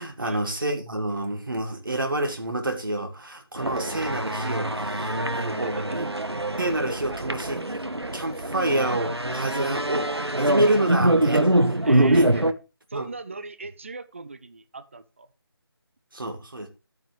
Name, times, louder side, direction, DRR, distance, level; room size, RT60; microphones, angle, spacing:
voice 1, 0.0-6.1 6.6-7.8 8.1-10.0 10.3-12.3 12.9-13.1 16.1-16.7, right 1 dB, 55° right, 1.9 m, -28 dB
sound 1, 3.6-12.5, right 1 dB, 90° right, 1.3 m, -24 dB
voice 2, 5.2-6.0 6.5-6.6 9.5-9.7 11.8-12.5 12.9-15.3, right 3 dB, 30° right, 0.6 m, -39 dB
12.0 x 9.2 x 3.2 m
figure-of-eight pair, 160°, 13 cm